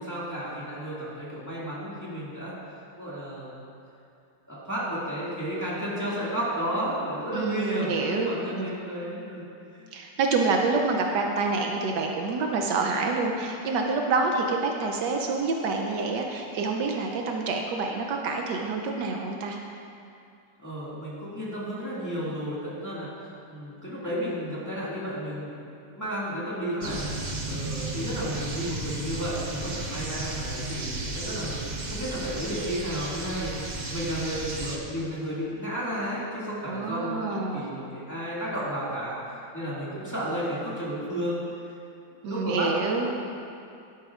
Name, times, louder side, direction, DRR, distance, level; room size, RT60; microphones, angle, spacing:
voice 1, 0.0-2.5 3.0-3.5 4.5-9.4 9.8-9.9 20.6-23.1 23.5-25.6 25.9-27.0 27.4-39.1 39.5-41.4 42.1-43.0, equal, 10° left, -9 dB, 1.9 m, -32 dB
voice 2, 7.3-8.7 9.9-19.6 36.6-37.7 42.2-43.1, right 3 dB, 75° right, 2 dB, 1.2 m, -27 dB
sound 1, 26.8-34.8, right 2 dB, 55° right, 0.4 m, -34 dB
11.5 x 9.1 x 2.4 m, 2.5 s
omnidirectional pair, 1.9 m